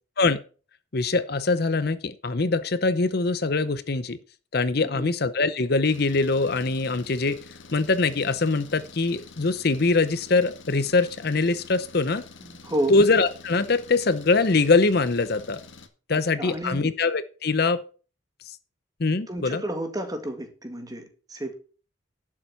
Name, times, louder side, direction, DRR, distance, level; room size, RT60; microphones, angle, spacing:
voice 1, 0.9-4.2 4.5-7.4 7.7-12.2 12.9-15.6 16.1-17.8 18.5-18.6 19.0-19.6, left 3 dB, 50° left, 13 dB, 0.7 m, -23 dB
voice 2, 4.8-5.1 12.4-12.9 16.1-16.9 19.3-21.5, right 1 dB, 20° right, 6 dB, 1.9 m, -31 dB
Engine, 5.8-15.9, left 4 dB, 70° left, 1.7 m, -47 dB
11.5 x 7.4 x 5.8 m, 0.37 s
head